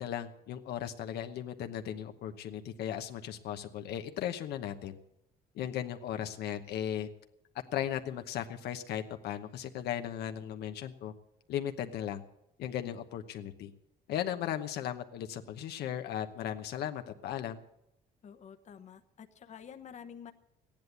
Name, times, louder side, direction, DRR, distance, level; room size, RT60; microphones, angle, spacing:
voice 1, 0.0-5.0 5.5-7.1 7.7-11.1 11.5-12.2 12.6-13.7 14.1-17.6, left 10 dB, 75° left, 7 dB, 1.0 m, -37 dB
voice 2, 18.2-20.3, left 8 dB, 45° left, 7 dB, 1.0 m, -49 dB
14.0 x 10.5 x 8.1 m, 0.81 s
cardioid pair, 110°, 17 cm